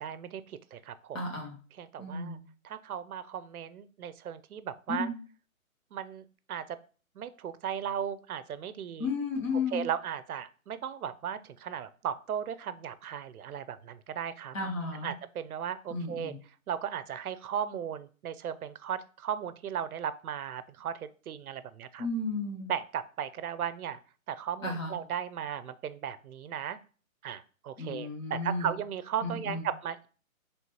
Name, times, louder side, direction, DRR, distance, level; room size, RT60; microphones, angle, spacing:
voice 1, 0.0-1.2 1.8-2.4 2.6-5.1 5.9-6.8 7.2-9.1 9.7-14.6 15.0-16.3 16.7-22.1 22.7-24.0 24.3-26.8 27.2-30.1, right 9 dB, 80° right, 14 dB, 0.6 m, -36 dB
voice 2, 1.1-1.5 2.0-2.4 4.9-5.1 9.0-9.8 14.5-15.1 15.9-16.4 22.0-22.7 24.6-25.0 27.8-28.7 29.2-29.7, left 3 dB, 60° left, -1 dB, 1.9 m, -33 dB
4.2 x 3.2 x 3.1 m, 0.39 s
hypercardioid pair, 180°, 43 cm